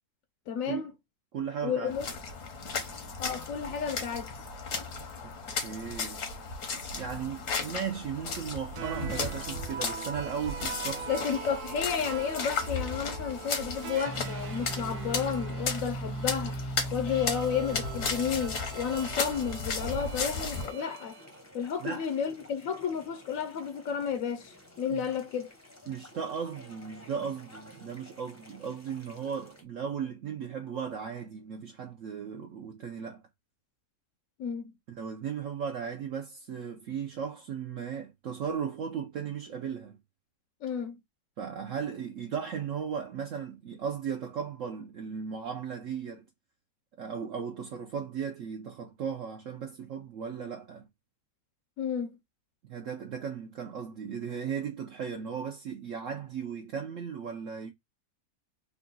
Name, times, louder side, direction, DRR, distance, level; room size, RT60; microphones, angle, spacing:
voice 1, 0.5-0.9 1.6-2.1 3.2-4.3 11.1-16.6 16.9-21.2 21.5-25.5 34.4-34.7 40.6-41.0 51.8-52.2, left 7 dB, 70° left, 0.9 m, -32 dB
voice 2, 1.3-2.0 5.2-5.3 5.6-6.2 6.9-11.1 21.8-22.1 24.9-25.2 25.9-33.2 35.0-40.0 41.4-46.2 47.0-50.9 52.7-57.7, right 7 dB, 65° right, 1.0 m, -36 dB
sound 1, 1.9-20.7, left 4 dB, 90° left, 1.6 m, -35 dB
sound 2, 8.8-21.3, right 3 dB, 80° right, 1.4 m, -39 dB
sound 3, 19.7-29.6, left 1 dB, 15° left, 0.6 m, -53 dB
3.8 x 2.4 x 3.8 m
omnidirectional pair, 1.6 m